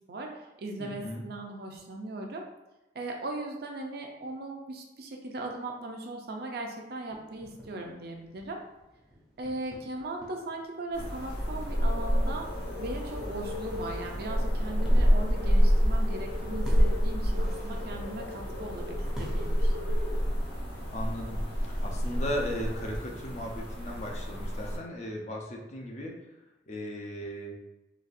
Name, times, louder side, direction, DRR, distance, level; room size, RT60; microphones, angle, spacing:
voice 1, 0.1-2.4 2.9-8.6 9.4-12.4 12.8-18.9 19.2-19.9, right 2 dB, 60° right, 1 dB, 0.5 m, -38 dB
voice 2, 0.8-1.2 20.9-21.4 21.8-26.1 26.7-27.5, equal, 40° left, 0 dB, 0.5 m, -36 dB
sound 1, 7.1-19.7, equal, ahead, 0.6 m, -50 dB
sound 2, 10.9-24.8, equal, 80° left, 1.4 m, -28 dB
3.9 x 2.4 x 2.5 m, 1.0 s
head